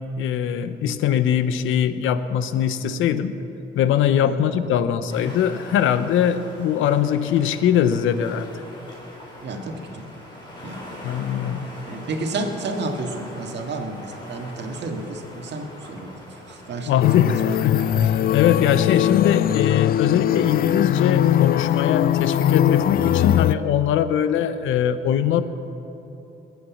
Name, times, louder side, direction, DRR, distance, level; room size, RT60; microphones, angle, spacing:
voice 1, 0.2-3.4 3.7-8.5 11.0-11.7 16.9-25.4, left 9 dB, 85° left, 12 dB, 0.8 m, -21 dB
sound 1, 5.1-22.8, left 1 dB, 20° left, 4.4 m, -43 dB
voice 2, 9.4-10.1 10.6-10.8 11.9-16.9 17.2-17.4, right 2 dB, 60° right, 4 dB, 1.8 m, -31 dB
sound 2, 17.0-23.5, left 11 dB, 50° left, 0.4 m, -20 dB
20.5 x 8.3 x 7.1 m, 3.0 s
cardioid pair, 90°, 20 cm